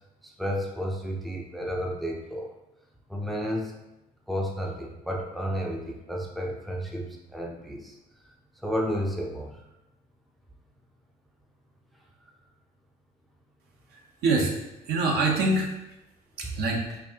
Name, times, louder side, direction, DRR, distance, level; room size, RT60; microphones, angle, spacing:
voice 1, 0.4-2.5 3.1-3.7 4.3-8.0 8.6-9.6, equal, ahead, 0 dB, 0.5 m, -31 dB
voice 2, 13.9-14.6 14.8-15.7 16.4-17.0, right 3 dB, 70° right, 0 dB, 0.8 m, -25 dB
4.4 x 2.6 x 2.8 m, 0.94 s
cardioid pair, 110°, 17 cm